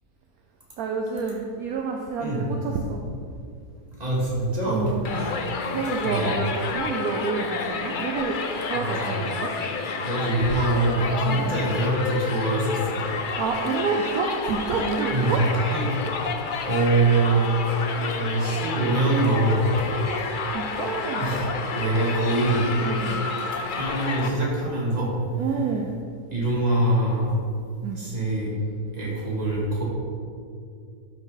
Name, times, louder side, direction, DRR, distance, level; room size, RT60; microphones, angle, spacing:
voice 1, 0.8-3.0 4.7-5.1 5.7-8.4 8.7-9.5 11.3-11.5 13.4-15.4 20.0-21.4 21.7-22.0 22.8-23.2 25.4-25.9 27.8-28.0, right 5 dB, 70° right, 2 dB, 1.1 m, -29 dB
voice 2, 4.0-5.3 6.0-6.4 8.7-9.2 10.0-13.0 15.1-15.4 15.7-15.9 16.7-17.5 18.0-19.9 21.2-21.5 21.7-22.7 23.7-25.1 26.3-27.4 27.9-28.5 28.9-29.8, right 2 dB, 25° right, -5 dB, 2.2 m, -24 dB
Crowd, 5.0-24.3, left 4 dB, 70° left, 0.4 m, -30 dB
11.5 x 6.3 x 3.9 m, 2.4 s
omnidirectional pair, 1.8 m